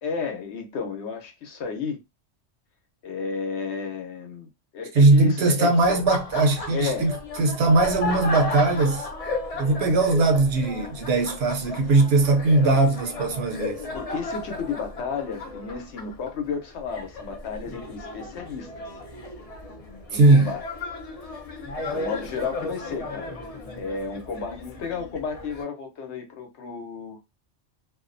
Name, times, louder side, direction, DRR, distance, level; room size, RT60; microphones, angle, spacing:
voice 1, 0.0-2.0 3.0-4.5 4.7-6.0 6.7-7.1 12.6-12.9 13.9-18.9 20.1-20.6 21.6-23.4 23.7-27.2, left 5 dB, 70° left, 0.9 m, -32 dB
voice 2, 4.9-7.1 7.4-9.1 9.6-13.8 20.1-20.5, right 2 dB, 65° right, 0.8 m, -20 dB
Laughter, 5.8-25.6, left 2 dB, 55° left, 0.4 m, -35 dB
2.5 x 2.1 x 2.5 m
omnidirectional pair, 1.2 m